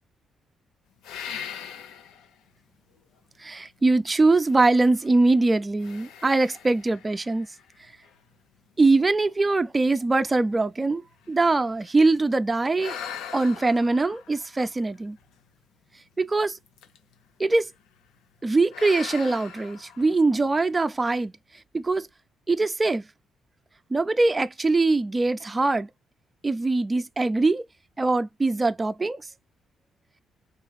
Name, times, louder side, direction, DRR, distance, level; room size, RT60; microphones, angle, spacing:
sound 1, 1.0-2.3 2.9-3.0 4.4-5.3 5.8-8.2 8.9-9.0 9.4-9.6 9.8-12.1 12.8-15.5 16.7-17.2 17.5-17.8 18.7-20.6, left 8 dB, 90° left, 0.7 m, -41 dB
voice 1, 3.4-7.5 8.8-11.0 11.3-13.0 13.3-15.2 16.2-16.6 17.4-17.7 18.4-21.3 21.7-22.1 22.5-23.0 23.9-25.9 26.4-27.6 28.0-29.2, right 3 dB, 20° right, 0.4 m, -22 dB
3.7 x 2.4 x 3.1 m
cardioid pair, 90°, 0 cm